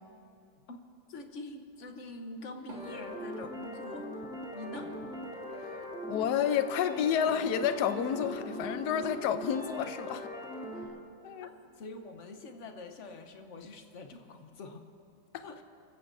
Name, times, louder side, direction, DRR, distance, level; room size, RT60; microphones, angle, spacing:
voice 1, 1.1-4.1 4.5-4.9 11.4-11.5 11.8-14.8 15.4-15.7, left 2 dB, 50° left, 5 dB, 1.0 m, -45 dB
Wood, 2.6-8.6, right 2 dB, 70° right, 4.0 m, -54 dB
sound 1, 2.7-10.9, equal, ahead, 2.7 m, -40 dB
voice 2, 6.1-10.3 11.2-11.5 15.3-15.4, left 8 dB, 65° left, 10 dB, 1.1 m, -30 dB
29.5 x 15.5 x 2.7 m, 2.5 s
omnidirectional pair, 2.1 m